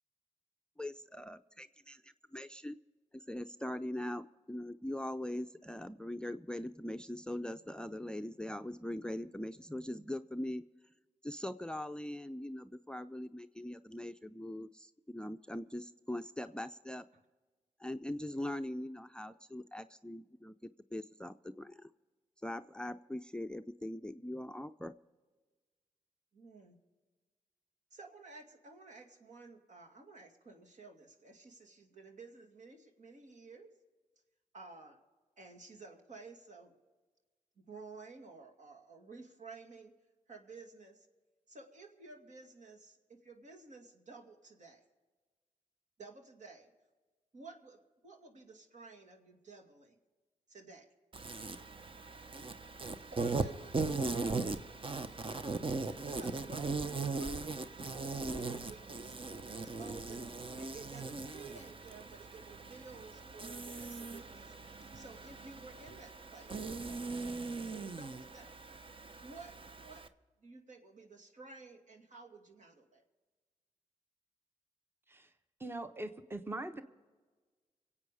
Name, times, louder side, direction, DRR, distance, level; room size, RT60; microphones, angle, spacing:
voice 1, 0.8-2.8 3.3-10.6 11.2-17.0 17.8-21.9 22.4-24.9, left 1 dB, 5° left, 12 dB, 0.5 m, -41 dB
voice 2, 26.3-26.8 27.9-33.7 34.5-35.0 35.4-36.8 37.7-39.9 40.3-41.1 41.5-44.8 46.0-46.7 47.3-50.0 50.5-50.9 52.8-54.3 55.8-68.5 69.2-70.0 70.4-73.0, right 3 dB, 65° right, 3 dB, 2.3 m, -54 dB
Insect, 51.1-70.1, right 3 dB, 40° right, 0.9 m, -39 dB
voice 3, 75.6-76.8, right 2 dB, 15° right, 9 dB, 1.0 m, -41 dB
24.5 x 8.5 x 4.9 m, 1.4 s
supercardioid pair, 45°, 14 cm